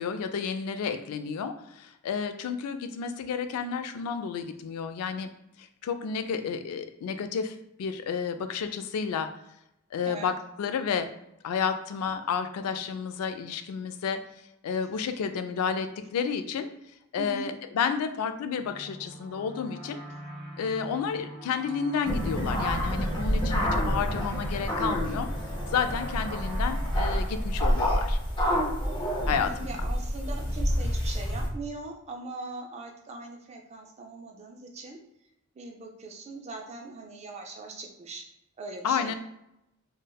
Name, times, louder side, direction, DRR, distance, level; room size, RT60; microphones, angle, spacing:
voice 1, 0.0-5.3 5.6-9.3 9.9-11.1 11.4-14.2 14.6-16.7 17.1-20.0 20.6-25.3 25.7-28.2 29.3-29.7 38.8-39.1, left 6 dB, 85° left, 12 dB, 0.3 m, -31 dB
voice 2, 17.2-17.5 29.3-35.0 35.6-38.2 38.6-39.1, right 3 dB, 30° right, 2 dB, 0.4 m, -40 dB
sound 1, 18.5-28.9, equal, 5° right, 1.2 m, -43 dB
sound 2, 22.1-31.5, equal, 20° left, 0.6 m, -28 dB
3.3 x 2.2 x 2.2 m, 0.83 s
head